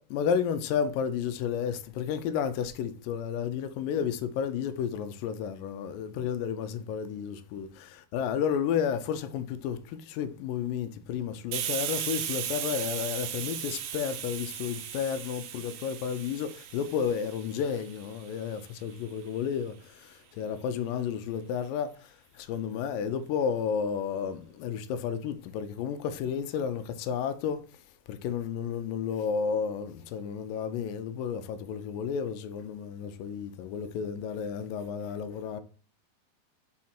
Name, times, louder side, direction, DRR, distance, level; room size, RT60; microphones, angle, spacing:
voice 1, 0.0-27.6 28.1-35.6, left 7 dB, 85° left, 2.3 m, -32 dB
Hiss, 11.5-18.9, right 10 dB, 90° right, 2.5 m, -37 dB
6.1 x 3.8 x 4.3 m
omnidirectional pair, 4.0 m